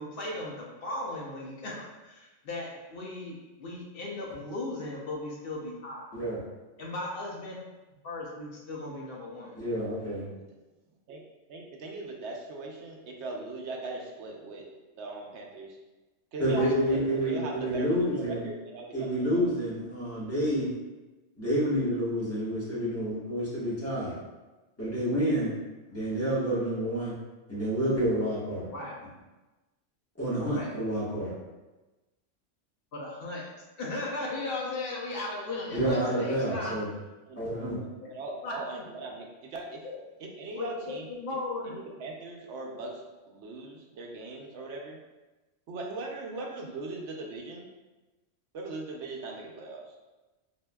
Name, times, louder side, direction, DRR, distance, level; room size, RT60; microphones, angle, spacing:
voice 1, 0.0-6.1 6.8-7.6 8.0-9.5 16.5-16.7 28.7-29.0 30.3-30.7 32.9-36.8 38.0-38.1 38.4-38.8 39.8-40.0 40.5-41.8, left 2 dB, 60° left, -3 dB, 0.8 m, -37 dB
voice 2, 9.5-10.3 16.4-18.5 18.9-20.7 21.4-24.2 24.8-25.5 25.9-27.1 27.5-28.7 30.2-31.3 35.7-36.9 37.4-37.8, equal, 10° left, -9 dB, 1.1 m, -29 dB
voice 3, 11.5-14.7 15.0-15.8 16.3-19.5 37.3-37.4 37.8-39.8 40.2-41.1 41.7-45.0 45.7-47.7 48.5-49.9, right 3 dB, 70° right, 0 dB, 0.9 m, -40 dB
4.3 x 2.6 x 2.2 m, 1.1 s
omnidirectional pair, 1.3 m